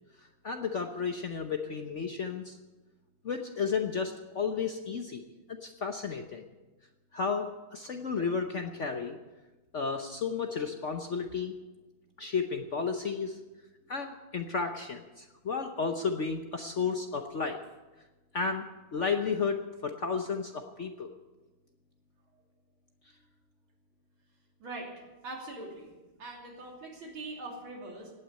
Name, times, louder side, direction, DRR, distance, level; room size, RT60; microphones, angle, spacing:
voice 1, 0.2-2.6 3.2-5.2 5.6-6.5 7.1-9.2 9.7-11.5 12.2-13.4 13.9-17.6 18.3-18.7 18.9-21.1, left 5 dB, 55° left, 5 dB, 0.9 m, -33 dB
voice 2, 24.6-25.9 26.2-28.1, right 2 dB, 85° right, 0 dB, 3.6 m, -42 dB
17.0 x 9.2 x 8.3 m, 1.2 s
omnidirectional pair, 2.2 m